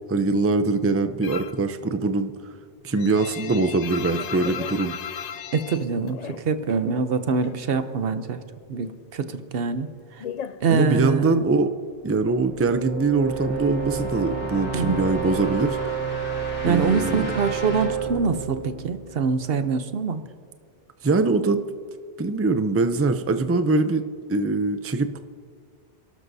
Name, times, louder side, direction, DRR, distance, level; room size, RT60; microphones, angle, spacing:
voice 1, 0.1-2.3 2.8-4.9 10.7-11.7 12.0-15.8 16.6-17.3 21.0-21.6 22.2-24.0 24.3-25.2, right 3 dB, 20° right, 9 dB, 0.4 m, -22 dB
sound 1, 1.2-1.7 2.0-6.9 7.1-8.2 8.5-11.3, left 8 dB, 65° left, 0.4 m, -36 dB
voice 2, 5.5-8.4 8.7-9.9 10.2-10.3 10.6-11.4 14.7-15.0 16.6-20.2, right 5 dB, 60° right, 10 dB, 0.9 m, -24 dB
sound 2, 12.0-19.8, right 5 dB, 85° left, 2.8 m, -30 dB
28.0 x 12.0 x 2.7 m, 2.1 s
omnidirectional pair, 1.2 m